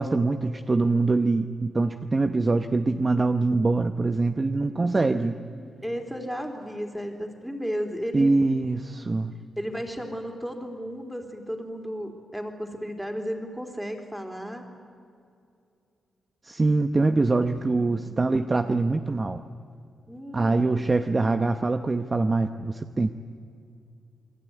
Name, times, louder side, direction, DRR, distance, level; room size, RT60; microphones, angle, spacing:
voice 1, 0.0-5.4 8.1-9.3 16.4-19.4 20.3-23.1, right 3 dB, 25° right, 8 dB, 0.9 m, -24 dB
voice 2, 5.5-8.3 9.6-14.7 17.7-18.1 20.1-20.7, equal, 5° right, 3 dB, 3.6 m, -34 dB
29.0 x 20.5 x 9.5 m, 2.4 s
cardioid pair, 110°, 0 cm